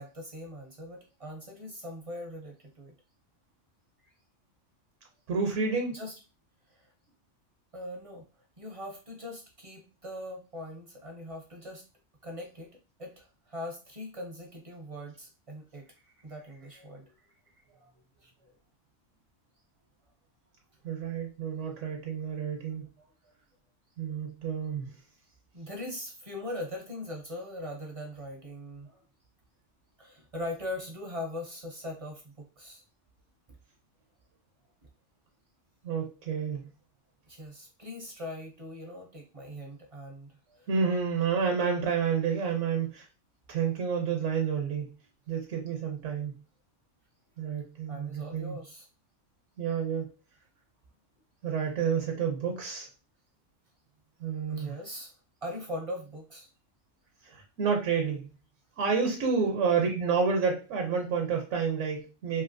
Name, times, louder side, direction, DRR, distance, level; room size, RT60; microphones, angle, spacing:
voice 1, 0.0-2.9 4.0-4.1 5.9-6.1 6.7-6.9 7.7-8.3 8.6-11.8 12.2-17.3 17.7-17.9 18.2-18.5 23.0-23.3 25.5-29.0 30.0-32.8 37.3-40.7 47.9-48.9 54.5-55.1 55.4-56.5 59.4-59.5, left 1 dB, 40° right, 1 dB, 0.5 m, -41 dB
voice 2, 5.3-5.9 20.8-22.9 24.0-24.9 35.8-36.6 40.7-43.1 43.5-44.9 45.3-46.3 47.4-48.6 49.6-50.1 51.4-52.9 54.2-54.7 57.2-58.3 58.8-62.4, right 6 dB, 75° right, 2 dB, 1.0 m, -29 dB
3.0 x 2.8 x 2.5 m, 0.33 s
omnidirectional pair, 1.3 m